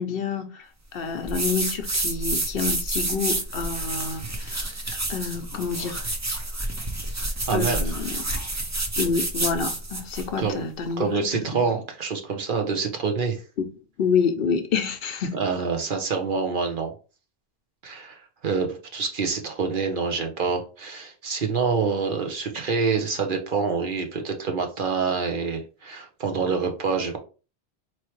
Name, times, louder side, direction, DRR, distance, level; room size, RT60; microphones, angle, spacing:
voice 1, 0.0-4.7 5.1-6.0 7.5-8.5 9.0-11.2 11.5-11.6 13.6-13.7 14.0-15.4, left 5 dB, 65° left, 0.8 m, -28 dB
sound 1, 1.3-10.3, right 2 dB, 25° right, 0.4 m, -29 dB
voice 2, 7.5-7.8 10.4-10.6 11.0-13.4 15.3-16.9 17.8-27.2, right 5 dB, 55° right, 0.9 m, -26 dB
4.4 x 3.1 x 3.0 m
omnidirectional pair, 1.1 m